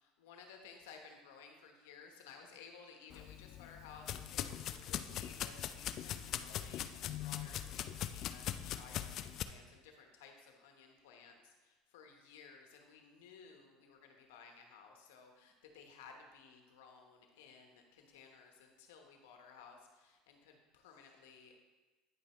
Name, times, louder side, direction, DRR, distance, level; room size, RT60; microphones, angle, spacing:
voice 1, 0.0-21.5, left 5 dB, 90° left, 3 dB, 1.1 m, -57 dB
sound 1, 3.1-9.4, left 11 dB, 55° left, 0.4 m, -41 dB
9.4 x 5.4 x 3.1 m, 1.2 s
supercardioid pair, 105°, 0 cm